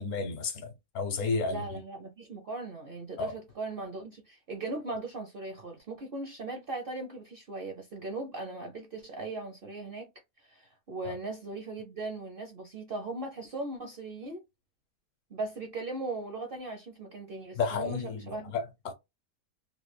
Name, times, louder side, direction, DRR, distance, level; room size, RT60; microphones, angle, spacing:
voice 1, 0.0-1.6 3.2-3.3 11.0-11.1 17.6-18.9, left 4 dB, 65° left, 1.1 m, -32 dB
voice 2, 1.5-10.1 10.4-14.4 15.3-18.5, right 2 dB, 55° right, 0.6 m, -38 dB
3.2 x 2.2 x 3.1 m
omnidirectional pair, 1.5 m